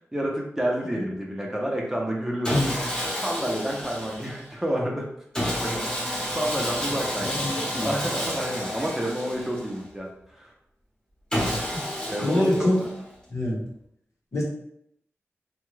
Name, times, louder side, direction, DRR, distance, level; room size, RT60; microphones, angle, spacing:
voice 1, 0.1-2.5 3.1-5.1 5.4-10.1 10.3-10.5 12.0-12.5, right 1 dB, 10° right, -2 dB, 0.7 m, -29 dB
Sawing, 2.4-4.5 5.3-9.9 11.3-13.1, equal, 15° left, 1.0 m, -30 dB
voice 2, 7.2-7.9 11.5-11.6 12.2-12.8 13.3-13.6 14.3-14.4, left 1 dB, 65° left, -4 dB, 1.0 m, -25 dB
2.8 x 2.3 x 3.2 m, 0.75 s
cardioid pair, 60°, 5 cm